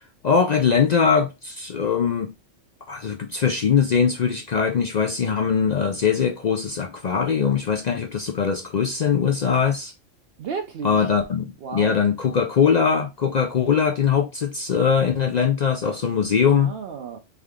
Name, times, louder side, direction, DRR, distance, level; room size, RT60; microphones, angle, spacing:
voice 1, 0.2-2.3 2.9-9.9 10.8-16.7, left 6 dB, 65° left, 0.4 m, -21 dB
voice 2, 10.4-11.1 11.6-12.0 15.9-16.0 16.5-17.2, right 6 dB, 60° right, 0.7 m, -33 dB
3.7 x 3.5 x 3.5 m
omnidirectional pair, 1.3 m